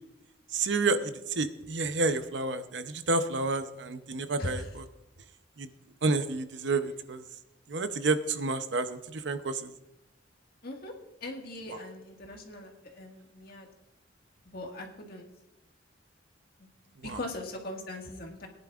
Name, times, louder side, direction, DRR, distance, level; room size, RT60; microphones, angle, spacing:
voice 1, 0.5-4.9 5.6-5.7 6.0-7.2 7.7-9.7 11.7-11.8 17.0-17.3, right 3 dB, 65° right, 10 dB, 0.7 m, -30 dB
voice 2, 10.6-10.9 11.2-13.7 14.5-15.3 17.0-18.5, left 1 dB, 55° left, 1 dB, 1.8 m, -40 dB
20.5 x 10.5 x 2.5 m, 0.93 s
head